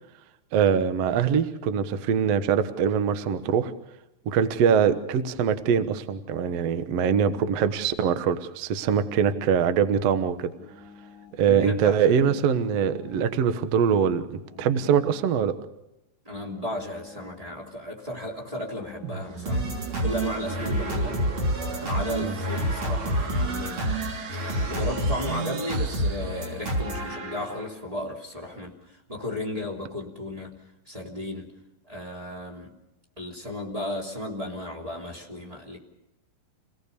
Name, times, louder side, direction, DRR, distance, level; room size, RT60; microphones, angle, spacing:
voice 1, 0.5-3.7 4.2-10.5 11.4-15.5 22.2-22.3, right 7 dB, 85° right, 10 dB, 1.4 m, -23 dB
sound 1, 10.4-11.5 12.3-13.5 14.4-15.5 16.4-17.5 18.4-19.5 20.4-21.5 22.4-23.5 24.4-25.5 26.4-27.5, left 5 dB, 25° left, 4.7 m, -49 dB
voice 2, 11.4-12.4 16.2-19.7 20.0-21.2 21.8-24.1 24.5-30.6 30.9-31.5 31.9-32.7 33.2-35.8, left 1 dB, 10° right, 0 dB, 2.5 m, -34 dB
sound 2, 19.0-26.9, right 7 dB, 70° right, 3.1 m, -39 dB
sound 3, 19.5-27.7, equal, 35° right, 3.5 m, -28 dB
27.0 x 18.0 x 6.8 m, 0.92 s
omnidirectional pair, 4.8 m